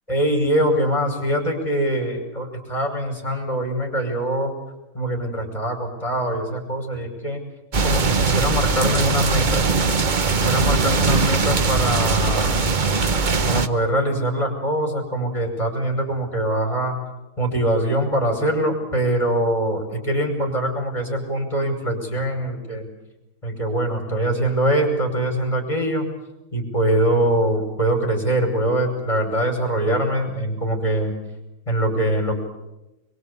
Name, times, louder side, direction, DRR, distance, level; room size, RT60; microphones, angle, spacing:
voice 1, 0.1-4.5 4.9-7.4 7.8-9.7 10.3-12.6 13.5-17.0 17.4-22.9 23.4-26.1 26.5-31.1 31.7-32.3, right 1 dB, 15° left, 1 dB, 5.6 m, -23 dB
sound 1, 7.7-13.7, right 4 dB, 50° right, 0.5 m, -20 dB
24.5 x 23.0 x 8.3 m, 0.96 s
omnidirectional pair, 2.3 m